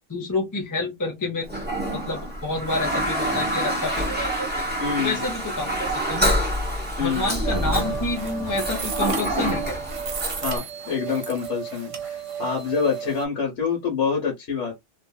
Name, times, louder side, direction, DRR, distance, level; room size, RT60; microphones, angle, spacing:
voice 1, 0.1-1.5 1.9-4.5 5.0-6.4 7.0-9.8, left 2 dB, 20° left, 0.6 m, -28 dB
Toilet flush, 1.5-10.6, equal, 10° right, 0.9 m, -27 dB
voice 2, 4.8-5.2 7.0-7.3 10.4-14.7, left 6 dB, 80° left, 1.4 m, -26 dB
sound 1, 7.4-13.3, right 7 dB, 55° right, 0.3 m, -33 dB
2.8 x 2.6 x 2.3 m
omnidirectional pair, 1.3 m